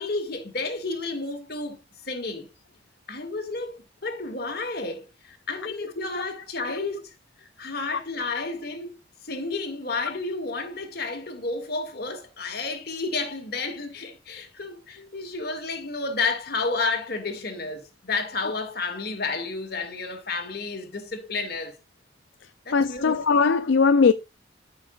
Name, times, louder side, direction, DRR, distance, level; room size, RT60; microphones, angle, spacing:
voice 1, 0.0-1.8 2.0-2.5 3.1-7.1 7.4-8.9 9.2-21.8 22.7-23.3, left 3 dB, 50° left, 2.2 m, -31 dB
voice 2, 22.7-24.1, left 5 dB, 70° left, 0.4 m, -19 dB
13.0 x 6.5 x 2.4 m
head